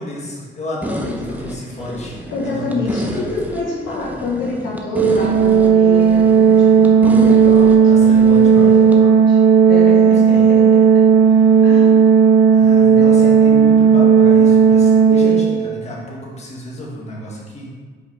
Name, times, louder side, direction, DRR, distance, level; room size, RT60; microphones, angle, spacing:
voice 1, 0.0-2.1 2.4-3.2 7.8-8.9 10.2-10.5 12.5-17.7, left 1 dB, 35° left, -4 dB, 2.0 m, -31 dB
sound 1, 0.8-9.0, right 1 dB, 10° right, 0.8 m, -30 dB
voice 2, 1.0-1.7 2.3-7.9 8.5-11.0 11.6-12.1 13.0-13.4 15.2-15.6, left 3 dB, 70° left, -3 dB, 1.3 m, -27 dB
Organ, 4.9-15.8, right 6 dB, 80° right, 0.7 m, -12 dB
5.4 x 4.8 x 4.7 m, 1.5 s
cardioid pair, 90°, 20 cm